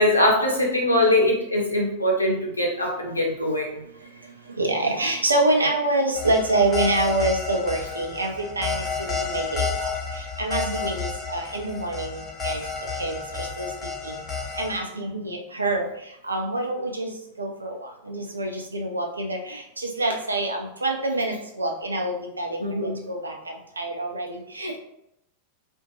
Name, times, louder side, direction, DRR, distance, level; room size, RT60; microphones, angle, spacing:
voice 1, 0.0-3.7 5.6-5.7 10.6-10.9 14.9-15.2 22.6-23.0, left 1 dB, 85° left, -1 dB, 0.6 m, -22 dB
voice 2, 3.8-12.6 13.0-13.7 14.0-14.2 14.5-24.8, right 2 dB, 80° right, 2 dB, 0.4 m, -27 dB
sound 1, 6.1-14.8, left 4 dB, 20° left, 0.6 m, -31 dB
2.5 x 2.1 x 2.7 m, 0.79 s
figure-of-eight pair, 90°, 0 cm